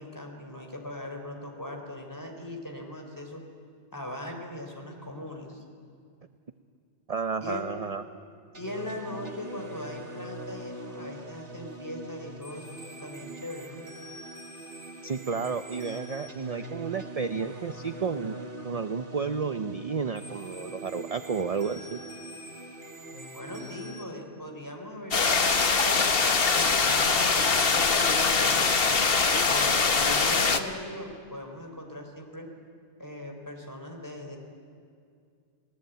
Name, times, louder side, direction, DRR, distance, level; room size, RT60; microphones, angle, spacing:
voice 1, 0.0-3.4 3.9-5.6 7.4-7.7 8.6-13.8 23.3-26.1 26.5-28.6 29.4-32.5 33.0-34.4, left 1 dB, 15° left, 2 dB, 3.9 m, -40 dB
voice 2, 7.1-8.0 15.0-22.0, right 5 dB, 35° right, 9 dB, 0.7 m, -32 dB
sound 1, 8.5-24.0, right 2 dB, 75° right, 2.4 m, -43 dB
sound 2, 25.1-30.6, left 4 dB, 55° left, 1.5 m, -23 dB
30.0 x 19.5 x 9.2 m, 2.3 s
omnidirectional pair, 1.2 m